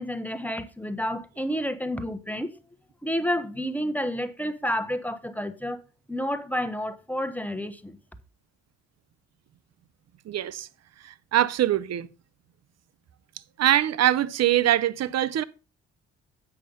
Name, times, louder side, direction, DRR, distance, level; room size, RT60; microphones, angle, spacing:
voice 1, 0.0-2.5 3.0-5.8 6.1-8.0, equal, 5° left, 1.1 m, -30 dB
voice 2, 10.3-10.7 11.0-12.1 13.6-15.4, right 12 dB, 50° right, 0.7 m, -23 dB
8.5 x 5.7 x 5.5 m
hypercardioid pair, 45°, 33 cm